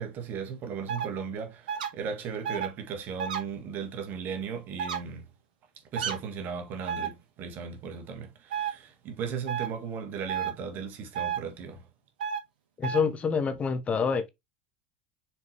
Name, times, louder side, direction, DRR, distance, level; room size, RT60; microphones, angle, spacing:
voice 1, 0.0-5.3 5.9-11.9, right 6 dB, 45° right, 1.9 m, -36 dB
sound 1, 0.9-1.1 1.7-1.9 2.4-2.7 3.2-3.4 4.8-5.0 6.0-6.2 6.9-7.1 8.5-8.7 9.5-9.7 10.3-10.5 11.2-11.4 12.2-12.4 12.8-13.0, right 8 dB, 70° right, 1.5 m, -30 dB
voice 2, 12.8-14.3, left 5 dB, 30° left, 1.0 m, -27 dB
6.4 x 4.7 x 3.4 m
figure-of-eight pair, 75°, 5 cm